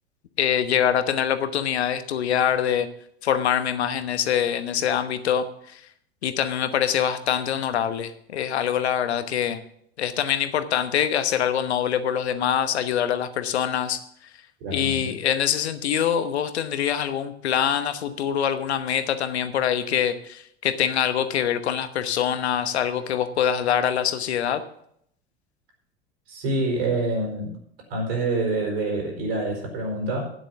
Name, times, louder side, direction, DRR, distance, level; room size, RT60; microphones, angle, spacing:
voice 1, 0.4-2.9 3.2-5.8 6.2-9.6 10.0-14.0 14.7-24.6, left 9 dB, 75° left, 11 dB, 1.1 m, -24 dB
voice 2, 14.6-15.0 26.3-27.5 27.9-30.3, right 2 dB, 65° right, 0 dB, 4.9 m, -26 dB
9.6 x 7.9 x 7.1 m, 0.69 s
figure-of-eight pair, 75°, 33 cm